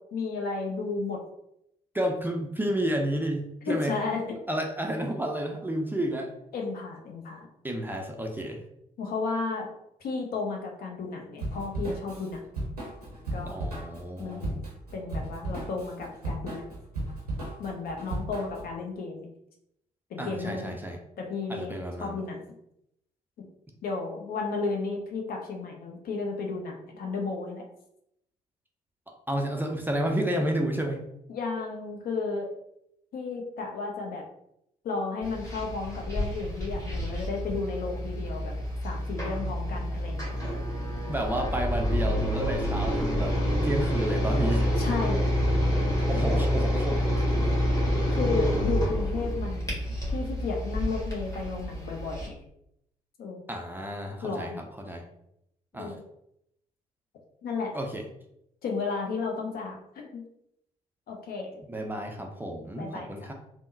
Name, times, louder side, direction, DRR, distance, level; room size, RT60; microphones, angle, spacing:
voice 1, 0.1-1.2 3.7-4.3 6.5-7.5 9.0-9.7 10.0-12.4 13.3-13.6 14.2-14.6 14.9-16.6 17.6-19.3 20.1-20.7 21.2-22.4 23.4-23.5 23.8-27.6 31.3-32.5 33.1-34.2 34.8-38.5 38.8-40.3 44.8-45.3 48.1-49.7 50.1-52.4 53.2-53.4 54.2-54.6 55.7-56.0 57.4-57.7 58.6-60.2 61.1-61.6 62.8-63.1, left 4 dB, 50° left, 1 dB, 0.7 m, -33 dB
voice 2, 1.9-4.0 4.5-6.3 7.6-8.6 13.4-14.6 20.2-21.0 21.5-22.2 29.3-31.0 41.1-44.8 46.1-47.0 53.5-55.0 55.7-56.0 57.7-58.1 61.7-63.3, right 1 dB, 10° right, 1 dB, 0.4 m, -31 dB
Drum kit / Drum, 11.4-18.7, right 1 dB, 90° right, 0.6 m, -35 dB
sound 1, 35.2-52.3, equal, 15° left, 1.5 m, -28 dB
3.5 x 2.0 x 2.5 m, 0.79 s
figure-of-eight pair, 40°, 19 cm